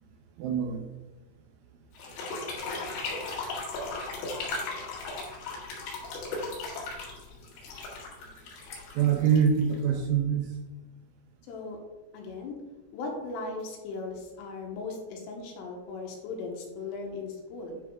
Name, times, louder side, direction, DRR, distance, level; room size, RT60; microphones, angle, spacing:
voice 1, 0.4-0.8 9.0-10.5, right 7 dB, 80° right, 3 dB, 2.9 m, -24 dB
sound 1, 2.0-10.0, left 3 dB, 60° left, 3.2 m, -36 dB
voice 2, 11.5-11.8 12.1-12.6 12.9-17.8, left 3 dB, 80° left, 0 dB, 3.7 m, -38 dB
10.5 x 4.1 x 3.6 m, 1.1 s
omnidirectional pair, 5.9 m